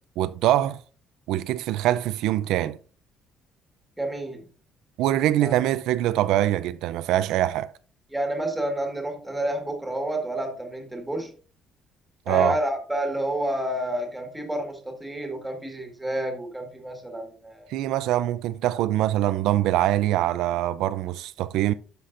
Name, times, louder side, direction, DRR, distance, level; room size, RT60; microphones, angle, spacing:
voice 1, 0.2-0.8 1.3-2.8 5.0-7.7 12.3-12.6 17.7-21.7, right 13 dB, 80° right, 0.4 m, -23 dB
voice 2, 4.0-4.4 5.4-5.6 8.1-11.3 12.3-17.7, right 1 dB, 5° right, 1.6 m, -29 dB
11.5 x 5.8 x 2.5 m
cardioid pair, 170°, 0 cm